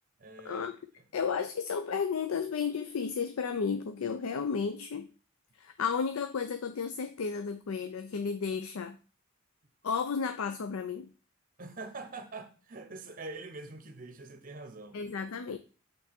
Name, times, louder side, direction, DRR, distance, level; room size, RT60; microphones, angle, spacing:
voice 1, 0.2-0.7 1.0-1.1 11.6-15.0, right 3 dB, 40° right, 0.9 m, -44 dB
voice 2, 1.1-5.1 5.6-9.0 9.8-11.1 14.9-15.6, left 6 dB, 85° left, 0.5 m, -33 dB
8.2 x 3.3 x 4.3 m
head